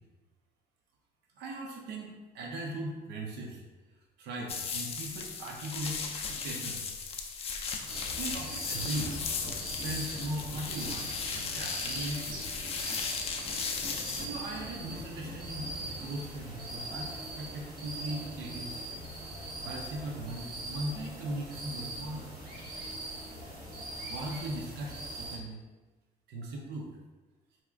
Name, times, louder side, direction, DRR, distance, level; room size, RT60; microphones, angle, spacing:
voice 1, 1.4-3.6 4.2-6.9 8.2-9.2 9.8-12.5 14.2-18.8 19.6-22.3 24.0-25.6 26.3-26.9, right 1 dB, 75° right, 0 dB, 0.6 m, -39 dB
sound 1, 4.5-14.3, left 5 dB, 35° left, 0.4 m, -36 dB
sound 2, 7.9-25.4, right 1 dB, 60° right, 1.0 m, -41 dB
4.1 x 2.4 x 2.4 m, 1.2 s
cardioid pair, 110°, 17 cm